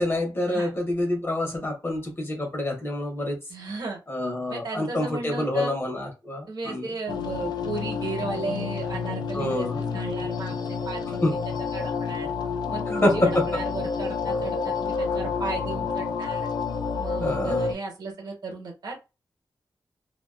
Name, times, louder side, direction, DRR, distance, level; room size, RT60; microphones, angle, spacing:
voice 1, 0.0-3.4 4.1-6.9 9.3-9.8 11.2-11.3 12.9-13.2 17.2-17.7, left 1 dB, 30° left, 0.8 m, -27 dB
voice 2, 3.5-4.0 4.5-5.7 6.5-11.4 11.7-12.3 12.7-16.5 17.0-19.0, right 3 dB, 70° right, 0.9 m, -35 dB
sound 1, 7.1-17.7, left 5 dB, 70° left, 0.3 m, -29 dB
2.5 x 2.2 x 2.3 m
wide cardioid pair, 180°, 7 cm